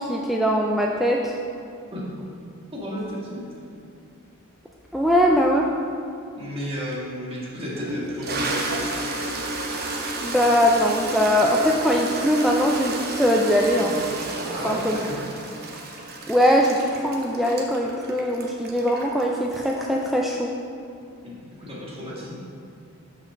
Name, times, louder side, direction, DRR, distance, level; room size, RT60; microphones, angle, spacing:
voice 1, 0.0-1.3 4.9-5.7 10.2-14.0 14.6-15.0 16.3-20.5, equal, ahead, -1 dB, 0.3 m, -21 dB
voice 2, 2.7-3.5 6.4-8.9 14.5-15.2 21.2-22.4, equal, 25° right, -6 dB, 1.7 m, -33 dB
Toilet flush, 6.9-7.0 7.6-20.1, right 2 dB, 45° right, 0.8 m, -31 dB
5.7 x 5.0 x 6.4 m, 2.5 s
head